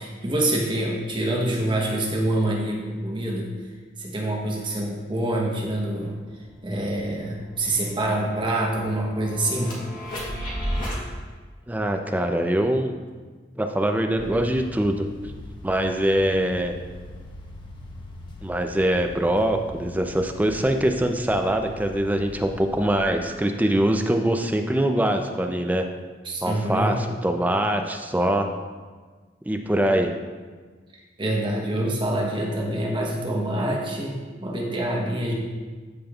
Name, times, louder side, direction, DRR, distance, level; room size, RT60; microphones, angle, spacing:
voice 1, 0.0-3.5 4.0-6.1 6.6-9.8 26.2-27.0 31.2-35.4, right 1 dB, 25° right, -1 dB, 0.9 m, -26 dB
sound 1, 6.0-11.0, equal, 50° left, 1.8 m, -34 dB
voice 2, 11.7-12.9 13.6-15.1 15.6-16.7 18.4-25.8 26.4-27.0 27.2-28.5 29.5-30.1, right 1 dB, 10° right, 4 dB, 0.4 m, -23 dB
sound 2, 14.2-23.0, left 1 dB, 25° left, 0.7 m, -41 dB
13.0 x 5.2 x 2.3 m, 1.4 s
head